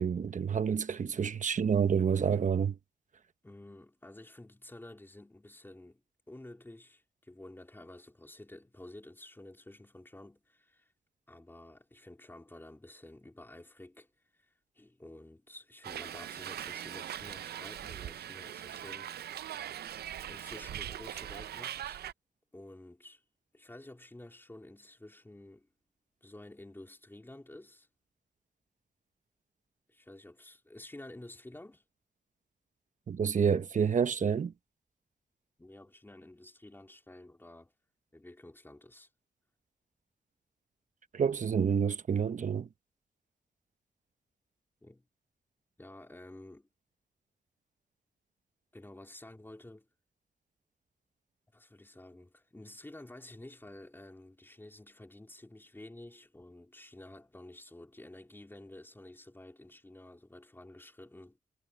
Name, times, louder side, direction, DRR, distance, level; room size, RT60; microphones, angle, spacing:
voice 1, 0.0-2.8 33.1-34.5 41.1-42.7, right 7 dB, 50° right, 1.0 m, -28 dB
voice 2, 3.4-10.9 11.3-14.1 14.4-19.1 20.3-22.0 22.5-23.2 23.5-25.7 26.2-27.9 29.9-31.8 35.6-37.7 38.1-39.1 44.8-45.0 45.8-46.7 48.7-49.9 51.5-61.4, left 1 dB, 15° left, 3.3 m, -51 dB
Hiss, 15.8-22.1, right 11 dB, 80° right, 0.4 m, -41 dB
wide cardioid pair, 110°, 17 cm